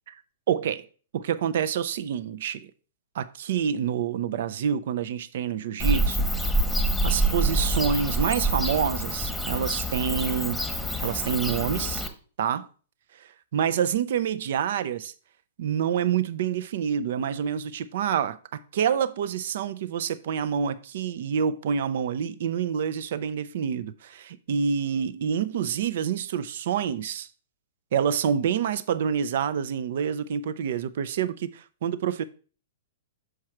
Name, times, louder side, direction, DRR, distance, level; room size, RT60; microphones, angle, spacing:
voice 1, 0.5-0.8 1.1-2.7 3.1-6.3 7.0-10.6 11.0-12.0 12.4-12.7 13.2-15.1 15.6-27.3 27.9-32.2, right 8 dB, 60° right, 0.5 m, -27 dB
Bird / Cricket, 5.8-12.1, right 1 dB, 5° left, 1.0 m, -26 dB
6.5 x 4.7 x 4.4 m
figure-of-eight pair, 110°, 0 cm